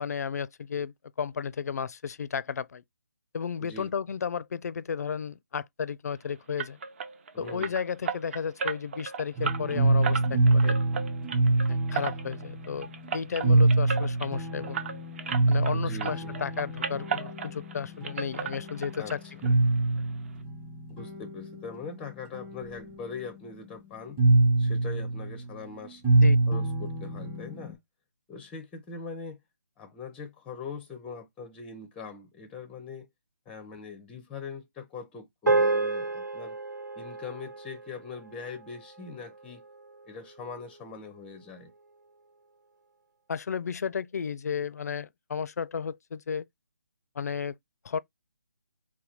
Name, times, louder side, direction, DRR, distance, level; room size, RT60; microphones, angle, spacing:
voice 1, 0.0-2.8 3.3-6.8 7.4-10.8 11.7-14.8 15.5-19.2 26.2-26.4 43.3-46.5 47.2-47.6 47.8-48.0, left 6 dB, 60° left, 0.4 m, -33 dB
voice 2, 3.6-3.9 7.3-7.8 15.7-16.4 19.0-19.1 20.9-24.2 24.6-26.0 26.5-27.8 28.3-29.4 29.8-33.1 33.5-36.6 37.0-39.6 40.0-41.7, left 5 dB, 10° left, 0.5 m, -42 dB
sound 1, 6.6-15.7 16.0-17.8 18.0-19.2 19.4-19.5 20.0-20.1 20.4-20.5, right 6 dB, 40° right, 0.6 m, -35 dB
sound 2, 9.4-27.7, right 2 dB, 15° right, 1.0 m, -26 dB
sound 3, 35.5-40.0, right 3 dB, 85° right, 1.5 m, -30 dB
3.8 x 2.2 x 4.4 m
figure-of-eight pair, 155°, 10 cm